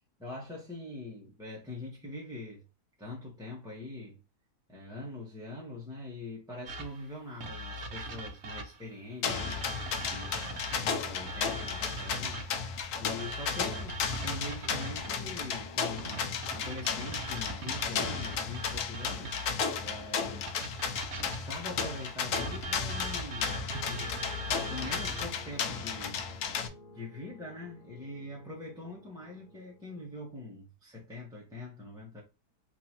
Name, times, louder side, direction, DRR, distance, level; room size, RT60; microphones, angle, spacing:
voice 1, 0.2-2.6 3.0-4.2 4.7-9.6 10.1-12.5 13.0-19.4 19.8-20.6 21.1-24.2 24.7-26.3 26.9-32.2, left 2 dB, 5° right, 0.8 m, -43 dB
sound 1, 6.7-8.9 9.3-12.7 13.2-15.2 16.0-19.8 20.5-25.4, right 1 dB, 50° right, 0.9 m, -40 dB
sound 2, 9.2-26.7, left 6 dB, 75° left, 1.2 m, -34 dB
sound 3, 14.2-22.3 23.7-30.4, left 3 dB, 40° left, 0.9 m, -54 dB
4.7 x 2.6 x 2.9 m
omnidirectional pair, 1.7 m